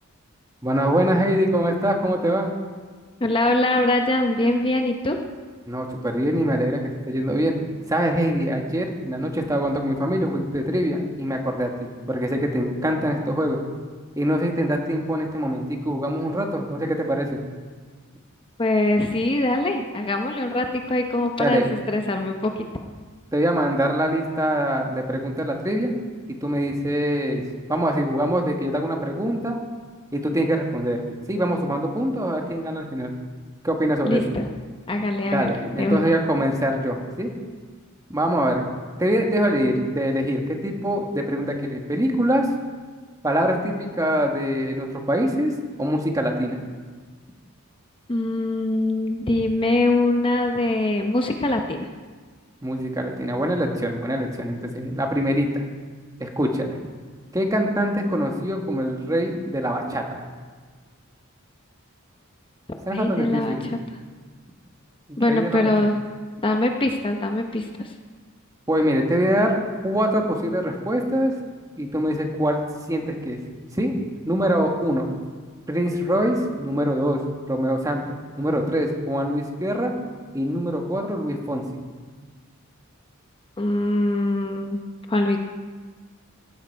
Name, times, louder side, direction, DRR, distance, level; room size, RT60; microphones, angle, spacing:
voice 1, 0.6-2.5 5.7-7.6 7.9-13.6 14.2-17.4 21.4-21.7 23.3-25.9 26.3-29.6 30.1-31.0 31.3-33.1 33.6-34.2 35.3-37.3 38.1-42.5 43.2-45.5 45.8-46.6 52.6-55.6 56.2-56.8 57.3-60.2 62.8-63.6 65.1-65.7 68.7-71.3 71.8-73.4 73.8-73.9 74.2-75.1 75.7-77.2 77.5-79.9 80.3-81.8, equal, 15° right, 2 dB, 1.5 m, -24 dB
voice 2, 3.2-5.2 18.6-22.6 34.0-34.5 34.9-36.1 48.1-51.9 62.9-63.7 65.2-66.0 66.4-67.9 83.6-84.8 85.1-85.4, left 2 dB, 25° left, 4 dB, 0.8 m, -23 dB
16.5 x 13.0 x 4.6 m, 1.5 s
head